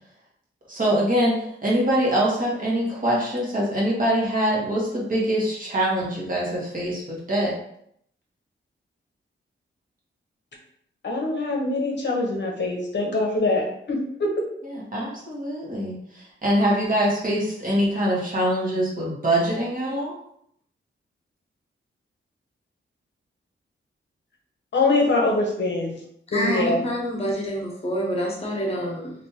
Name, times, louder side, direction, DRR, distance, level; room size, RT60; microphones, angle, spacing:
voice 1, 0.7-7.5 14.6-20.1, right 1 dB, 40° right, -4 dB, 1.1 m, -24 dB
voice 2, 11.0-14.5 24.7-26.0 26.3-26.9, left 2 dB, 60° left, 0 dB, 0.7 m, -23 dB
voice 3, 26.3-29.1, equal, 30° left, -2 dB, 1.0 m, -27 dB
3.4 x 2.6 x 2.8 m, 0.71 s
wide cardioid pair, 110°, 21 cm